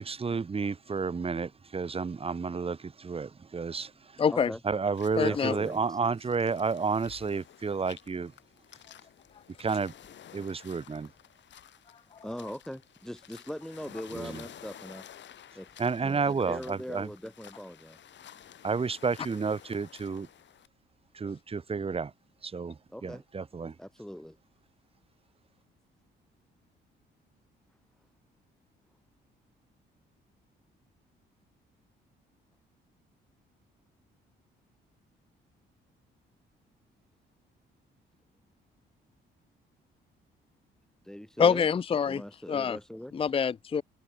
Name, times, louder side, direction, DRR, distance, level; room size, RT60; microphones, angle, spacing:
voice 1, 0.0-4.2 4.6-8.3 9.6-9.9 10.3-11.1 14.1-14.4 15.8-17.1 18.6-20.3 21.1-22.1 22.4-23.7, right 5 dB, 30° right, 1.3 m, -31 dB
voice 2, 4.2-4.5 5.2-5.5 12.1-12.2 41.4-42.2 42.5-42.8 43.1-43.8, left 6 dB, 30° left, 0.5 m, -25 dB
sound 1, 4.9-20.7, left 10 dB, 65° left, 5.4 m, -53 dB
voice 3, 5.3-6.0 12.2-15.0 15.5-15.7 16.0-18.0 22.9-23.2 23.8-24.4 41.0-41.7 42.1-43.1, equal, 5° left, 3.5 m, -40 dB
cardioid pair, 90°, 20 cm